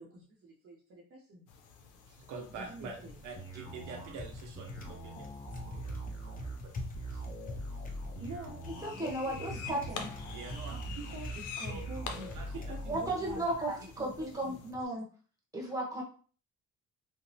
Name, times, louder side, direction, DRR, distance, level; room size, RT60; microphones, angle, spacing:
voice 1, 0.0-1.5 2.6-3.1 7.6-8.6 8.9-10.1 10.7-12.4 12.7-13.5 14.0-14.6, right 1 dB, 45° right, -3 dB, 0.7 m, -47 dB
sound 1, 1.5-14.7, left 6 dB, 80° left, 0.5 m, -49 dB
voice 2, 2.1-3.0 3.2-6.8 10.3-10.8 11.6-11.8 12.3-12.7, right 4 dB, 80° right, 2 dB, 0.7 m, -47 dB
Typing, 2.5-14.9, left 2 dB, 30° left, 0.6 m, -46 dB
sound 2, 3.4-13.0, right 2 dB, 60° left, 1.1 m, -43 dB
voice 3, 8.8-10.1 12.9-15.1 15.5-16.0, right 1 dB, 10° right, -2 dB, 1.0 m, -35 dB
2.9 x 2.0 x 2.6 m, 0.41 s
cardioid pair, 90°, 30 cm